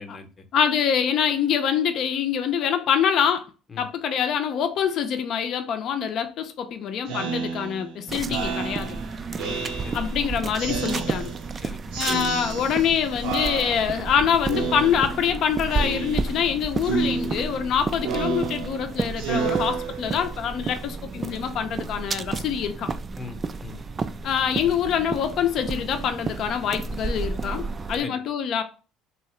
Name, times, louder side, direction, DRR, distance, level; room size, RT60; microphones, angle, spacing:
voice 1, 0.0-0.4 3.7-3.9 9.3-10.1 11.6-12.0 23.2-23.8 28.0-28.2, left 4 dB, 30° left, 0.8 m, -41 dB
voice 2, 0.5-3.5 3.8-9.0 9.9-11.3 12.0-22.9 24.2-28.6, left 8 dB, 60° left, 0.5 m, -25 dB
Speech synthesizer, 7.1-10.2 10.6-11.6 11.9-12.9 13.2-14.1 14.5-15.4 15.7-16.5 16.8-20.4, right 5 dB, 80° right, 0.8 m, -31 dB
sound 1, 8.1-28.0, right 4 dB, 30° right, 0.3 m, -32 dB
3.1 x 2.8 x 3.1 m
supercardioid pair, 85°, 0 cm